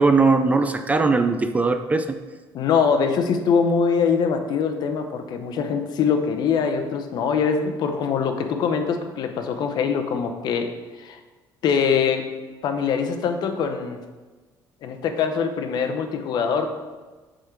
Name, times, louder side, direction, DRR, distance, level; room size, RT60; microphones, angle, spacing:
voice 1, 0.0-2.1, right 3 dB, 15° right, 8 dB, 0.3 m, -19 dB
voice 2, 2.5-11.2 11.6-12.3 12.6-14.0 14.8-16.7, left 6 dB, 55° left, 6 dB, 0.7 m, -23 dB
7.7 x 3.8 x 4.5 m, 1.3 s
cardioid pair, 140°, 8 cm